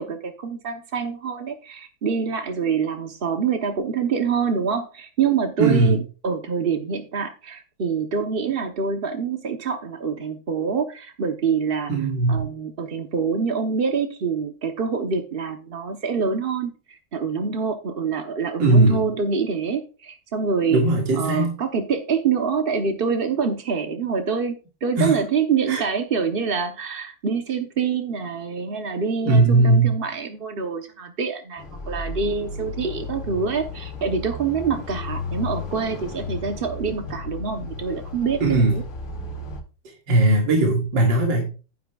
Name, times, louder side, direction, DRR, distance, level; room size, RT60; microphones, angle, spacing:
voice 1, 0.0-11.9 12.3-20.8 21.2-38.8, right 5 dB, 50° right, 5 dB, 0.7 m, -26 dB
voice 2, 5.6-6.0 11.9-12.4 18.6-19.1 20.7-21.6 25.0-25.2 25.7-25.8 29.2-30.0 38.4-38.8 40.1-41.4, right 2 dB, 65° right, 0 dB, 2.7 m, -18 dB
sound 1, 31.6-39.6, left 3 dB, 65° left, 2.1 m, -34 dB
11.5 x 10.0 x 2.3 m, 0.34 s
omnidirectional pair, 2.2 m